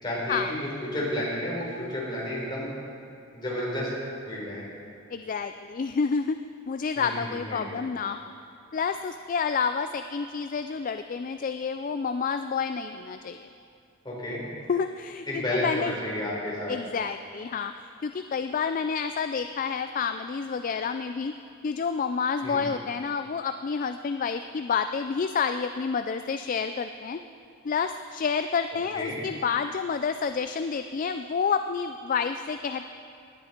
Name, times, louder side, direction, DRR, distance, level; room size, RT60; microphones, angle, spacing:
voice 1, 0.0-2.7 3.3-3.9 4.3-4.7 7.0-7.8 14.0-14.4 15.3-16.7 22.4-22.6 28.9-29.2, left 1 dB, 20° left, -6 dB, 4.2 m, -31 dB
voice 2, 5.1-6.4 6.7-8.2 8.7-13.5 14.7-15.9 16.7-17.7 18.0-21.3 21.6-27.2 27.6-32.9, left 5 dB, 40° left, 9 dB, 0.4 m, -29 dB
19.0 x 10.5 x 4.4 m, 2.5 s
head